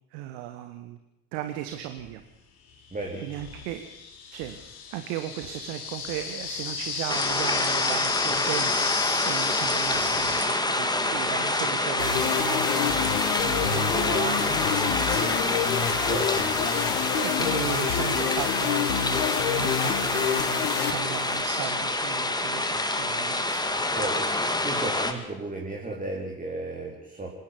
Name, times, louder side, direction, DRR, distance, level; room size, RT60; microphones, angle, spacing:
voice 1, 0.1-1.0 1.3-2.2 3.2-3.9 4.3-4.6 4.9-15.4 17.2-23.7, right 12 dB, 60° right, 8 dB, 1.7 m, -36 dB
sound 1, 2.0-2.1 3.0-10.5, left 6 dB, 50° left, 4.6 m, -32 dB
voice 2, 2.9-3.3 16.0-16.6 23.9-27.3, right 2 dB, 15° right, -1 dB, 3.9 m, -34 dB
sound 2, 7.1-25.1, left 2 dB, 10° left, 2.3 m, -27 dB
sound 3, 12.0-21.7, left 10 dB, 70° left, 1.8 m, -28 dB
26.0 x 10.5 x 9.9 m, 0.94 s
figure-of-eight pair, 60°, 45 cm